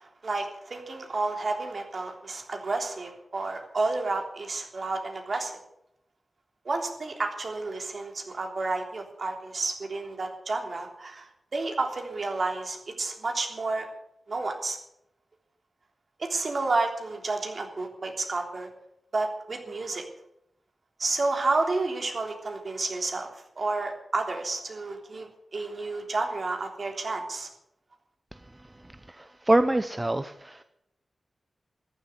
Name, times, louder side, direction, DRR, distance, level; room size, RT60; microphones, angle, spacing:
voice 1, 0.0-5.6 6.6-13.9 14.3-14.8 16.2-18.7 19.1-20.0 21.0-23.3 23.6-27.5, right 3 dB, 55° right, 3 dB, 3.4 m, -30 dB
voice 2, 29.1-30.6, right 1 dB, 20° right, 10 dB, 0.8 m, -25 dB
14.5 x 10.5 x 8.0 m, 0.79 s
cardioid pair, 65°, 0 cm